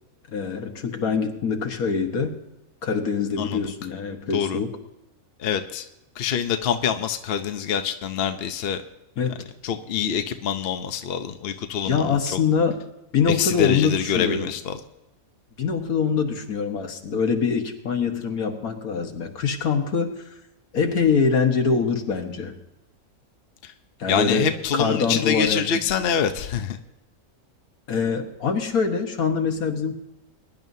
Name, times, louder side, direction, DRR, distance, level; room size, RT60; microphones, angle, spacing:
voice 1, 0.3-2.4 2.8-4.7 9.2-9.4 11.8-12.8 13.1-14.5 15.6-20.1 20.7-22.5 24.0-25.6 27.9-29.9, left 5 dB, 75° left, 4 dB, 1.8 m, -24 dB
voice 2, 3.4-3.7 4.3-4.6 5.4-5.8 6.2-8.8 9.6-12.2 13.3-14.8 24.1-26.8, left 7 dB, 50° left, 7 dB, 0.8 m, -25 dB
22.0 x 11.0 x 2.7 m, 0.92 s
omnidirectional pair, 1.5 m